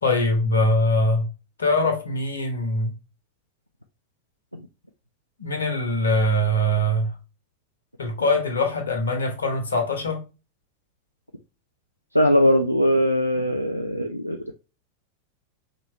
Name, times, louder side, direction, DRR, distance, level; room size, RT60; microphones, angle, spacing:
voice 1, 0.0-1.3 1.6-3.0 5.4-7.1 8.0-10.2, left 1 dB, 70° left, 1.3 m, -22 dB
voice 2, 12.1-14.6, equal, 90° left, 0.4 m, -21 dB
5.1 x 3.1 x 3.0 m
figure-of-eight pair, 90°, 0 cm